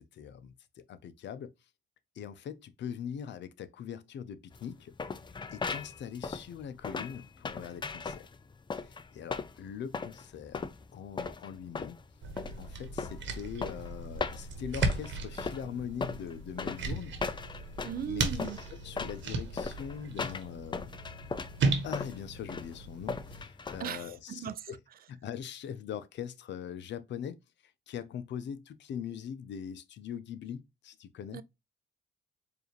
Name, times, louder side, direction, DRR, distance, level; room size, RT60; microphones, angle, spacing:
voice 1, 0.0-1.5 2.2-4.9 5.5-8.3 8.8-12.0 12.6-17.1 18.1-20.9 21.8-24.8 25.1-27.4 27.9-31.4, left 8 dB, 65° left, 0.6 m, -42 dB
sound 1, 4.5-24.2, left 4 dB, 25° left, 0.4 m, -38 dB
sound 2, 12.2-23.4, right 3 dB, 70° right, 1.2 m, -36 dB
voice 2, 17.8-18.6 23.8-24.6 31.3-31.4, right 9 dB, 50° right, 0.4 m, -37 dB
4.8 x 2.6 x 3.0 m
cardioid pair, 90°, 20 cm